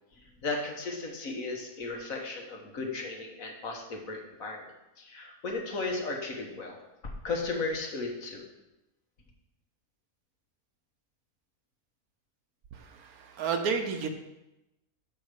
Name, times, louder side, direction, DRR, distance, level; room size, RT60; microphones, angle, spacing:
voice 1, 0.2-4.7 5.0-8.4, left 3 dB, 65° left, 1 dB, 1.7 m, -35 dB
voice 2, 12.7-14.1, right 5 dB, 80° right, 6 dB, 1.3 m, -31 dB
6.4 x 5.3 x 6.5 m, 0.94 s
omnidirectional pair, 1.5 m